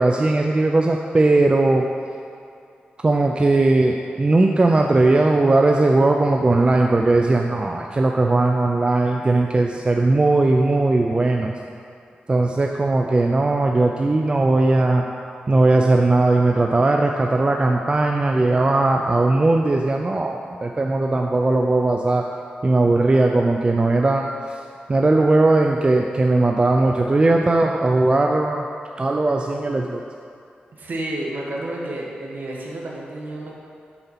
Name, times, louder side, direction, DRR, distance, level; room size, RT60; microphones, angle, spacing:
voice 1, 0.0-1.9 3.0-11.5 12.3-15.0 15.5-22.2 22.6-24.3 24.9-28.6 29.0-30.0, right 2 dB, 30° right, 2 dB, 0.4 m, -18 dB
voice 2, 30.8-33.5, right 1 dB, 60° right, -3 dB, 1.3 m, -30 dB
6.7 x 4.2 x 5.7 m, 2.5 s
cardioid pair, 80°, 3 cm